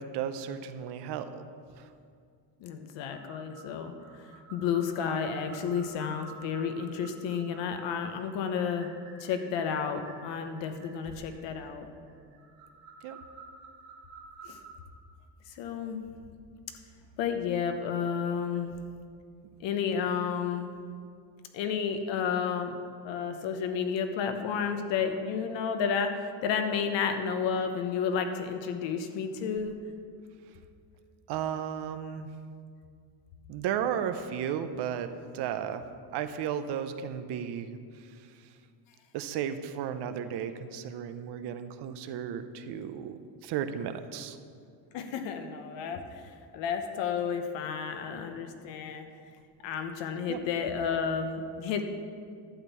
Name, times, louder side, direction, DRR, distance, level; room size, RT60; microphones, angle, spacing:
voice 1, 0.0-1.5 1.8-1.9 13.0-13.2 31.3-32.3 33.5-35.1 35.3-35.8 36.1-37.8 39.1-44.4 50.3-50.4, right 8 dB, 60° right, 10 dB, 0.8 m, -34 dB
voice 2, 2.6-8.9 9.2-11.9 14.4-14.6 15.5-16.0 17.2-18.7 19.6-20.7 21.5-22.7 23.0-29.7 44.9-49.1 49.6-51.9, left 6 dB, 70° left, 7 dB, 1.1 m, -31 dB
sound 1, 3.1-14.7, right 4 dB, 85° right, 2.2 m, -51 dB
11.5 x 4.5 x 8.1 m, 2.3 s
cardioid pair, 135°, 46 cm